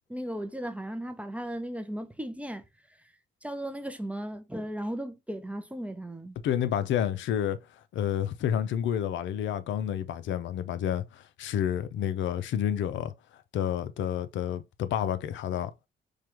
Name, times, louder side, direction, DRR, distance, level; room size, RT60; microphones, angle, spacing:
voice 1, 0.1-2.6 3.4-6.4, right 1 dB, 5° right, 0.5 m, -36 dB
voice 2, 6.4-7.6 7.9-13.1 13.5-15.7, left 10 dB, 70° left, 0.5 m, -29 dB
4.7 x 2.2 x 2.9 m
cardioid pair, 90°, 20 cm